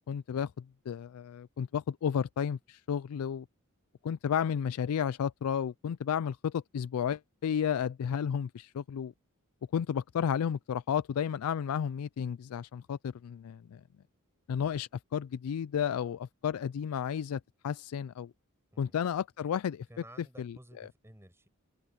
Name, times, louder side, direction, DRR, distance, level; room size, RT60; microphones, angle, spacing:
voice 1, 0.1-3.5 4.0-9.1 9.7-13.8 14.5-18.3 18.8-19.9 20.4-20.9, left 8 dB, 85° left, 0.3 m, -32 dB
voice 2, 19.9-21.5, right 1 dB, 10° right, 7.8 m, -53 dB
open air
head